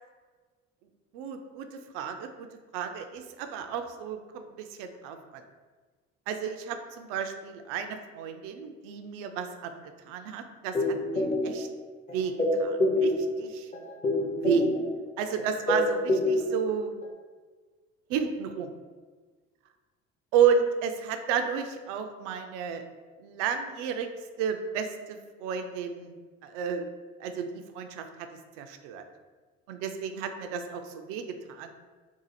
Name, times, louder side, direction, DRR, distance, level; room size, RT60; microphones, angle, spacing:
voice 1, 1.1-1.7 1.9-2.5 2.7-5.4 6.3-9.7 10.0-11.7 12.1-12.3 12.6-13.1 13.4-13.7 14.3-14.7 15.2-16.9 18.1-18.7 20.3-22.8 23.2-24.1 24.4-26.1 26.4-26.9 27.2-28.3 28.6-29.0 29.7-31.7, right 7 dB, 65° right, 7 dB, 0.5 m, -31 dB
sound 1, 10.7-11.8 12.1-13.5 13.7-15.1 15.4-16.7 17.0-17.1, left 1 dB, 20° left, 0.7 m, -27 dB
2.8 x 2.4 x 4.0 m, 1.4 s
hypercardioid pair, 60°, 39 cm